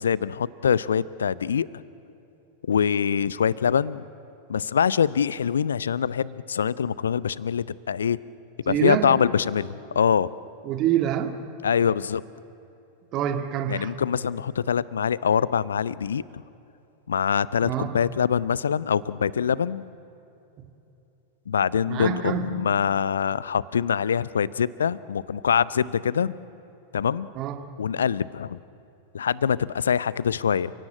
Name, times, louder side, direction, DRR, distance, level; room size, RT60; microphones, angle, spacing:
voice 1, 0.0-1.7 2.7-4.0 4.5-8.2 8.7-10.3 11.6-12.2 13.7-16.2 17.1-19.8 21.5-26.3 26.9-27.3 27.8-28.6 29.1-30.7, left 7 dB, 70° left, 20 dB, 0.6 m, -24 dB
voice 2, 8.7-9.1 10.6-11.3 13.1-13.9 17.6-18.0 21.9-22.5 27.4-27.6, right 10 dB, 35° right, 8 dB, 1.9 m, -26 dB
29.5 x 17.0 x 8.8 m, 2.9 s
figure-of-eight pair, 90°, 0 cm